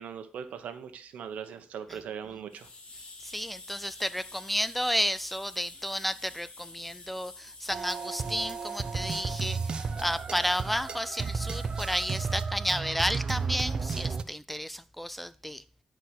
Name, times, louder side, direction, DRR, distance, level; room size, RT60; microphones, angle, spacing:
voice 1, 0.0-2.7, right 7 dB, 80° right, 1.1 m, -40 dB
sound 1, 2.5-12.4, left 3 dB, 45° left, 2.6 m, -49 dB
voice 2, 3.2-15.6, equal, 5° left, 0.4 m, -32 dB
sound 2, 7.7-14.2, right 5 dB, 40° right, 0.7 m, -33 dB
10.0 x 4.7 x 6.1 m
cardioid pair, 125°, 2 cm